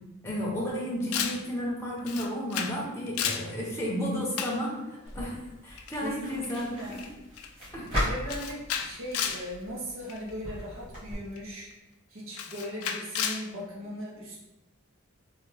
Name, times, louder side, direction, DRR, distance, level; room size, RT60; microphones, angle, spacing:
voice 1, 0.2-5.4 5.6-7.1 7.7-7.9, equal, 15° left, -4 dB, 0.7 m, -32 dB
Camera, 1.1-1.4 2.1-2.8 3.1-3.5 4.4-4.6 5.8-6.0 6.4-6.6 6.9-7.1 7.4-7.7 8.3-9.5 10.1-10.3 11.4-11.5 12.3-13.5, left 8 dB, 85° left, 0.3 m, -32 dB
sound 1, 5.0-11.1, equal, 25° right, 1.5 m, -37 dB
voice 2, 5.9-7.1 7.8-11.7 12.1-14.4, equal, 65° right, -4 dB, 0.9 m, -39 dB
3.4 x 2.2 x 3.2 m, 1.0 s
head